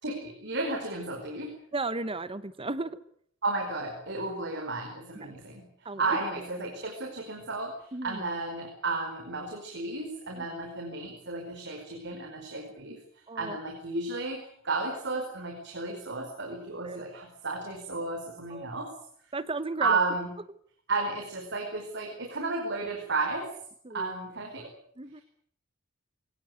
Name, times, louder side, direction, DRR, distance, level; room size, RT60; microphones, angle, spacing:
voice 1, 0.0-1.5 3.4-13.0 13.3-18.9 19.8-20.3 20.9-23.5 23.9-24.7, right 3 dB, 55° right, 3 dB, 5.0 m, -33 dB
voice 2, 1.7-3.0 5.2-5.3 5.8-6.2 7.9-8.2 10.3-10.4 13.3-13.6 16.8-17.0 18.5-18.7 19.3-20.0 23.8-24.1 25.0-25.2, right 3 dB, 25° right, 15 dB, 1.0 m, -35 dB
24.5 x 18.0 x 9.5 m, 0.65 s
head